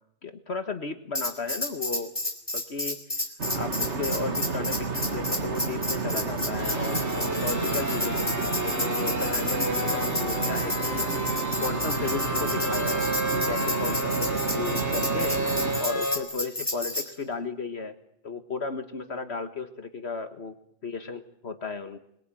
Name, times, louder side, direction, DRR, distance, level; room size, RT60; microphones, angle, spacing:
voice 1, 0.2-2.1 2.5-3.0 3.5-11.1 11.6-13.1 13.5-15.4 15.8-18.0 18.2-20.5 20.8-22.0, left 4 dB, 60° left, 8 dB, 1.7 m, -34 dB
Tambourine, 1.1-17.1, left 2 dB, 20° left, 4.1 m, -31 dB
sound 1, 3.4-15.8, right 4 dB, 65° right, 2.4 m, -31 dB
sound 2, 6.6-16.2, right 1 dB, 15° right, 3.1 m, -32 dB
25.5 x 22.0 x 9.0 m, 0.73 s
omnidirectional pair, 1.3 m